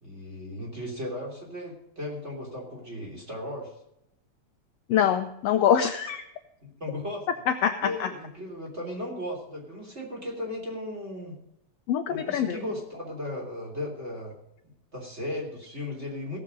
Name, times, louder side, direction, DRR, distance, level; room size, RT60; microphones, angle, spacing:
voice 1, 0.0-3.7 6.6-7.2 7.8-11.3 12.1-14.3 14.9-16.4, left 1 dB, 20° right, -2 dB, 3.2 m, -36 dB
voice 2, 4.9-6.2 7.5-8.1 11.9-12.6, left 9 dB, 80° left, 7 dB, 1.4 m, -24 dB
17.5 x 7.5 x 5.2 m, 0.82 s
omnidirectional pair, 3.6 m